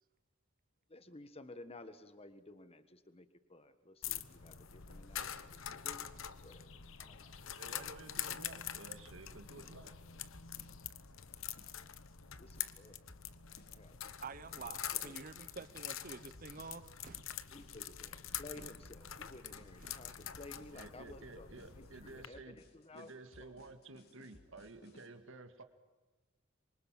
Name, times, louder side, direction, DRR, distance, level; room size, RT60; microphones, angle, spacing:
voice 1, 0.9-6.1 6.4-6.7 7.0-7.3 7.7-7.8 12.4-13.0 13.7-15.3 17.5-21.5 21.7-23.5, left 2 dB, 30° left, 11 dB, 1.5 m, -55 dB
sound 1, 4.0-22.3, left 10 dB, 65° left, 1.1 m, -45 dB
voice 2, 7.6-9.9 20.7-22.6 22.9-25.6, right 2 dB, 65° right, 8 dB, 1.8 m, -53 dB
sound 2, 9.1-25.1, left 1 dB, 50° left, 3.4 m, -62 dB
voice 3, 14.2-17.2 18.6-18.7 19.8-20.0, right 4 dB, 40° right, 13 dB, 0.8 m, -48 dB
26.5 x 24.5 x 7.5 m, 1.2 s
head